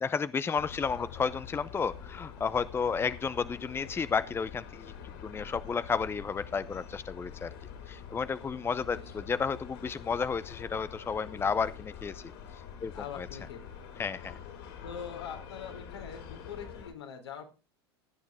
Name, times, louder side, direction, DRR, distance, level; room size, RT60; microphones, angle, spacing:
voice 1, 0.0-4.9 5.2-7.5 7.9-12.2 12.8-13.3 14.0-14.3, left 5 dB, 15° left, 15 dB, 0.7 m, -32 dB
sound 1, 0.6-16.9, left 7 dB, 65° left, 5.7 m, -46 dB
voice 2, 0.9-1.3 8.8-9.0 12.9-13.6 14.8-17.5, left 7 dB, 85° left, 2 dB, 4.0 m, -43 dB
17.0 x 9.5 x 3.5 m, 0.29 s
hypercardioid pair, 90°, 13 cm